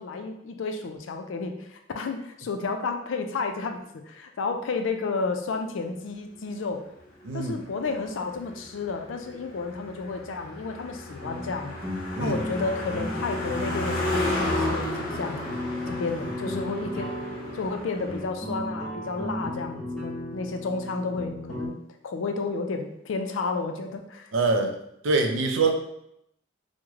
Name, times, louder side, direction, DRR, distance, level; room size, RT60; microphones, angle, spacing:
voice 1, 0.0-3.8 4.1-6.8 7.3-11.8 12.2-15.4 15.9-17.1 17.5-21.8 22.0-24.3, left 4 dB, 75° left, 5 dB, 0.4 m, -31 dB
Car passing by, 7.1-18.2, left 1 dB, 45° left, 0.8 m, -33 dB
voice 2, 7.2-7.6 12.2-12.4 24.3-24.7 25.0-25.7, right 3 dB, 75° right, 4 dB, 0.5 m, -24 dB
sound 1, 11.2-21.7, equal, 5° left, 0.7 m, -35 dB
3.1 x 2.1 x 3.5 m, 0.77 s
head